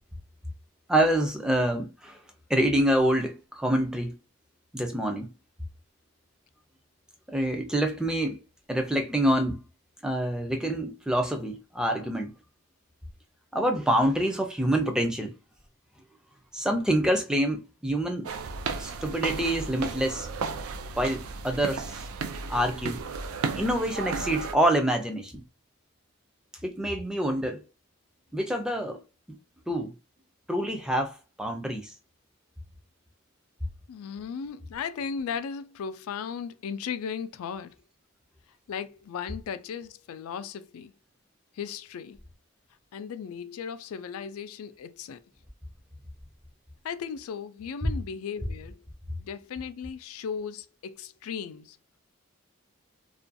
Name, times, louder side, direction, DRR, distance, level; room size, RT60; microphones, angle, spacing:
voice 1, 0.9-2.2 2.5-4.2 4.7-5.3 7.3-8.4 8.7-9.6 10.0-12.3 13.5-15.3 16.5-18.3 18.8-20.3 21.0-22.0 22.5-23.0 23.5-25.4 26.6-27.6 28.3-29.0 29.3-29.4 29.7-29.9 30.5-31.9, right 1 dB, 5° right, 0.3 m, -26 dB
sound 1, 18.2-24.5, right 4 dB, 85° right, 0.4 m, -34 dB
voice 2, 33.9-37.7 38.7-40.9 41.6-42.2 42.9-45.2 46.8-48.8 49.2-51.8, left 6 dB, 85° left, 0.3 m, -36 dB
2.4 x 2.2 x 2.5 m
head